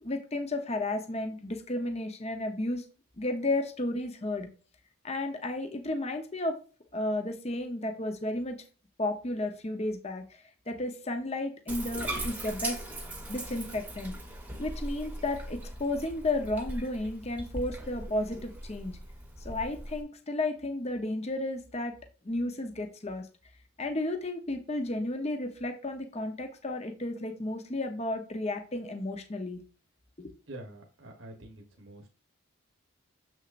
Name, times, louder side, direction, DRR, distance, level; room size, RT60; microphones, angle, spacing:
voice 1, 0.0-2.8 3.2-4.5 5.0-6.6 6.9-8.6 9.0-10.2 10.7-12.8 13.3-14.1 14.6-19.0 19.4-21.9 22.2-23.3 23.8-29.6 30.2-30.3, left 2 dB, 30° left, 6 dB, 0.9 m, -33 dB
Bathtub (filling or washing), 11.7-20.0, right 1 dB, 5° right, 1.1 m, -39 dB
voice 2, 30.5-32.1, right 1 dB, 60° right, 2 dB, 1.2 m, -46 dB
7.2 x 6.2 x 2.6 m, 0.37 s
head